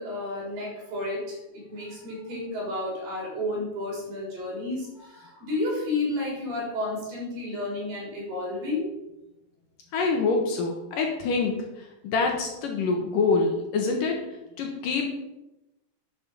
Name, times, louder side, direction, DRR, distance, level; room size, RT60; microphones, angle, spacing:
voice 1, 0.0-8.9, left 2 dB, 50° right, -3 dB, 5.3 m, -31 dB
voice 2, 9.9-11.5 12.0-14.2 14.6-15.1, left 4 dB, 70° left, 2 dB, 2.1 m, -25 dB
12.0 x 7.5 x 5.3 m, 0.95 s
omnidirectional pair, 5.5 m